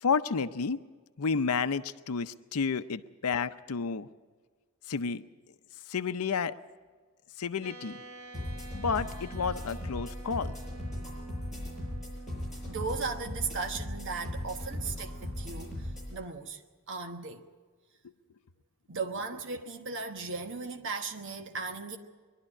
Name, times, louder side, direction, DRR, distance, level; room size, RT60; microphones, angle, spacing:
voice 1, 0.0-0.8 1.2-4.1 4.9-5.2 5.9-6.5 7.4-8.0 8.7-10.5, left 5 dB, 75° left, 0.6 m, -31 dB
sound 1, 7.6-16.2, right 3 dB, 85° right, 2.4 m, -49 dB
sound 2, 8.3-16.1, left 1 dB, ahead, 7.3 m, -38 dB
voice 2, 12.7-16.6 16.9-17.5 18.9-22.0, right 4 dB, 55° right, 1.2 m, -37 dB
22.0 x 12.0 x 9.9 m
head